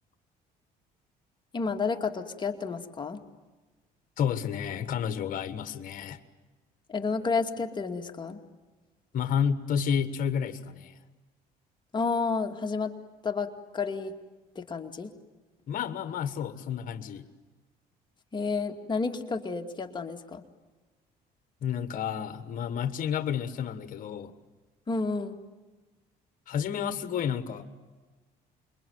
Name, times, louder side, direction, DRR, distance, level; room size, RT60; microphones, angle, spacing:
voice 1, 1.5-3.2 6.9-8.4 11.9-12.9 13.2-14.1 14.6-15.1 18.3-20.4 24.9-25.4, left 4 dB, 25° left, 4 dB, 2.4 m, -31 dB
voice 2, 4.2-6.2 9.1-11.0 15.7-17.3 21.6-24.3 26.5-27.7, left 8 dB, 55° left, 10 dB, 1.5 m, -30 dB
27.5 x 23.0 x 9.4 m, 1.2 s
cardioid pair, 110°, 17 cm